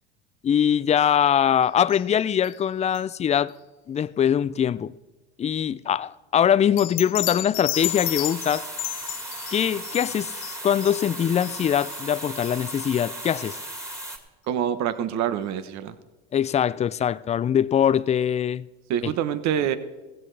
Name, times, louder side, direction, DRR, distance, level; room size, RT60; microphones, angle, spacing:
voice 1, 0.4-3.5 3.9-4.9 5.4-8.7 9.5-13.6 16.3-18.7, left 9 dB, 20° left, 0.4 m, -22 dB
sound 1, 1.9-2.1 2.4-2.6 2.9-3.0 6.8-12.6 13.0-13.1 13.5-13.6 14.0-14.1, left 16 dB, 60° left, 0.8 m, -33 dB
sound 2, 7.7-14.2, right 1 dB, 10° right, 2.4 m, -36 dB
voice 2, 14.5-15.9 18.9-19.8, right 9 dB, 55° right, 1.2 m, -26 dB
15.5 x 15.5 x 3.4 m
supercardioid pair, 90°, 34 cm